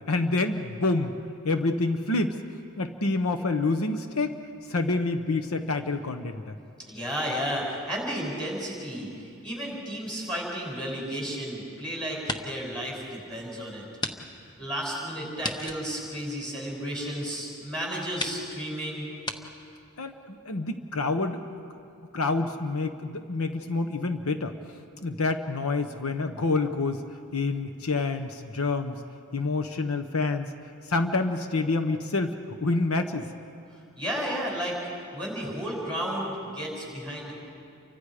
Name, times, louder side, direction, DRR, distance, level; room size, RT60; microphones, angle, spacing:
voice 1, 0.1-1.1 1.4-2.4 2.8-4.3 4.7-6.5 20.0-21.6 22.1-24.5 25.0-27.0 27.3-28.9 29.3-30.5 30.9-33.2, left 3 dB, 80° left, 8 dB, 1.0 m, -27 dB
voice 2, 6.9-13.9 14.6-19.1 34.0-34.8 35.1-37.3, equal, 5° left, -4 dB, 6.2 m, -33 dB
sound 1, 10.8-11.7 12.1-12.7 13.1-13.2 14.0-14.2 14.4-14.5 15.4-17.0 17.6-17.7 18.2-18.4 19.2-19.4, left 2 dB, 20° left, 0.9 m, -35 dB
29.5 x 24.5 x 5.0 m, 2.4 s
head